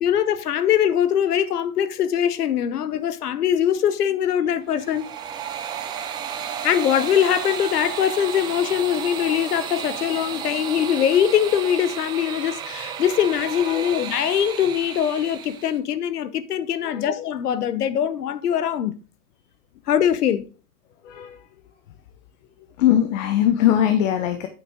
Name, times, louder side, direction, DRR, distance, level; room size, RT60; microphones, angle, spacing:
voice 1, 0.0-5.1 6.6-19.0 19.9-20.5, left 9 dB, 90° left, 0.9 m, -22 dB
sound 1, 4.6-15.8, right 8 dB, 10° right, 0.4 m, -33 dB
voice 2, 21.0-21.4 22.8-24.5, left 11 dB, 55° left, 1.1 m, -20 dB
8.7 x 6.0 x 3.7 m
hypercardioid pair, 125°, 45 cm